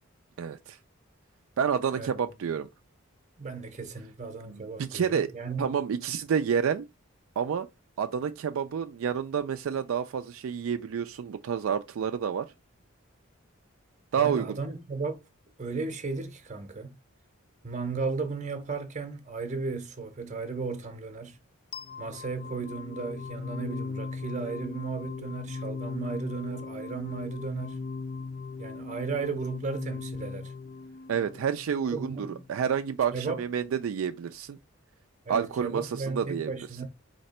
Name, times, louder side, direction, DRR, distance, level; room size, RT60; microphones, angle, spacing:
voice 1, 0.4-0.8 1.6-2.7 4.5-5.3 5.6-6.9 7.4-7.7 8.0-12.5 14.1-14.6 31.1-34.6 35.3-36.5, right 7 dB, 70° right, 0.3 m, -29 dB
voice 2, 3.4-5.8 14.2-15.2 15.6-17.0 17.6-21.4 22.0-27.9 28.6-30.5 31.9-32.5 33.1-33.4 35.3-36.9, right 4 dB, 35° right, 0.8 m, -35 dB
sound 1, 21.7-32.7, left 4 dB, 45° left, 0.4 m, -39 dB
4.3 x 2.9 x 4.1 m
head